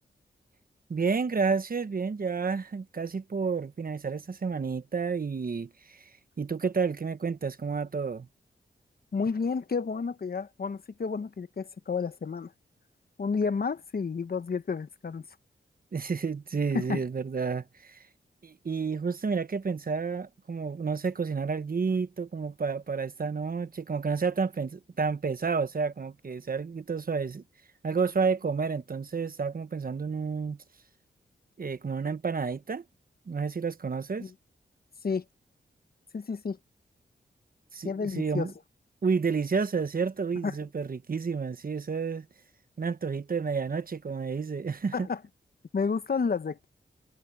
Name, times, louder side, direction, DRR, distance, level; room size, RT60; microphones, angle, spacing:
voice 1, 0.9-6.1 6.4-8.3 15.9-18.0 18.4-27.4 27.8-30.6 31.6-32.8 33.3-34.3 37.7-38.5 39.0-42.3 42.8-45.1, right 5 dB, 50° right, 1.2 m, -30 dB
voice 2, 9.1-12.5 13.2-15.3 16.7-17.0 34.2-34.3 35.0-35.2 36.1-36.6 37.8-38.5 40.4-40.5 44.9-45.2 45.7-46.7, left 5 dB, 55° left, 1.1 m, -30 dB
cardioid pair, 55°, 19 cm